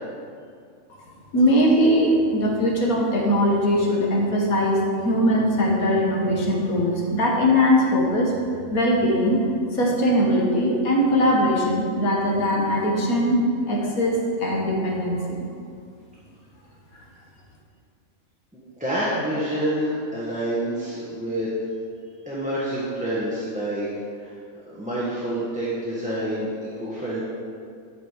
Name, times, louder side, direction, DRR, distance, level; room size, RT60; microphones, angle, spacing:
voice 1, 1.3-8.3 8.7-9.4 9.7-13.4 13.7-15.2, equal, 90° left, -2 dB, 1.9 m, -20 dB
voice 2, 18.5-21.5 22.2-23.9 24.1-24.4 24.7-27.2, right 1 dB, 5° right, -9 dB, 1.4 m, -27 dB
12.0 x 5.3 x 5.2 m, 2.3 s
omnidirectional pair, 1.5 m